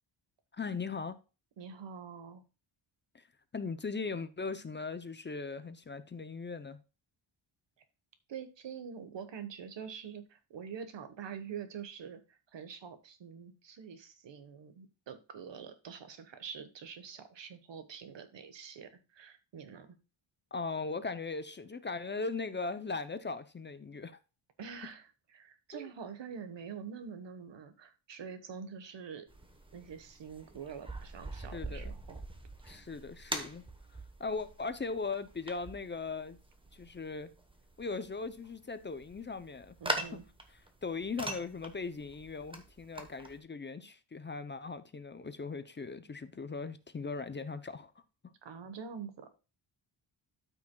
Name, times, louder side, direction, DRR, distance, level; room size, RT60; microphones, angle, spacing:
voice 1, 0.5-1.2 3.1-3.2 3.5-6.8 20.5-24.2 25.7-25.9 31.3-31.9 32.6-33.6 34.2-36.4 36.7-37.3 37.8-39.8 40.1-40.2 40.8-47.9, left 4 dB, 25° left, 0.4 m, -39 dB
voice 2, 1.6-2.4 8.3-19.9 24.6-29.3 29.7-32.2 39.8-40.2 48.4-49.3, right 7 dB, 60° right, 1.3 m, -45 dB
sound 1, 29.3-43.4, right 2 dB, 10° right, 1.0 m, -43 dB
13.0 x 6.1 x 2.2 m
wide cardioid pair, 175°, 49 cm